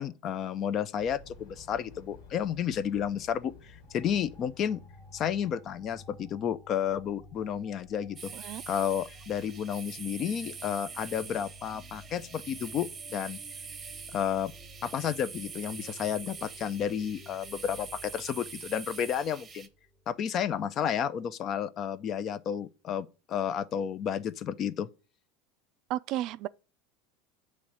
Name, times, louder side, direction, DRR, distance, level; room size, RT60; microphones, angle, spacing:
voice 1, 0.0-4.8 5.1-8.3 8.7-13.4 14.1-14.5 14.8-19.7 20.1-24.9, left 8 dB, 40° left, 0.5 m, -32 dB
sound 1, 1.0-6.3, left 3 dB, 65° left, 1.7 m, -53 dB
sound 2, 3.8-20.2, left 1 dB, 20° left, 1.1 m, -53 dB
sound 3, 8.2-19.7, right 6 dB, 20° right, 0.8 m, -44 dB
voice 2, 25.9-26.5, right 14 dB, 50° right, 0.3 m, -33 dB
8.4 x 3.2 x 6.1 m
supercardioid pair, 135°, 0 cm